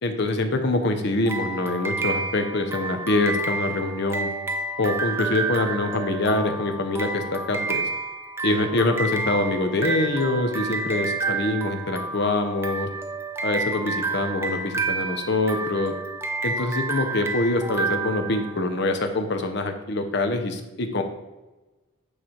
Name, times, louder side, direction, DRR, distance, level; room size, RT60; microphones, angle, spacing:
voice 1, 0.0-4.3 4.8-7.9 8.4-12.9 13.4-15.9 16.4-21.0, left 2 dB, 55° left, 6 dB, 0.7 m, -25 dB
sound 1, 1.3-18.9, right 3 dB, 10° right, 0.4 m, -30 dB
8.6 x 3.3 x 4.3 m, 1.1 s
head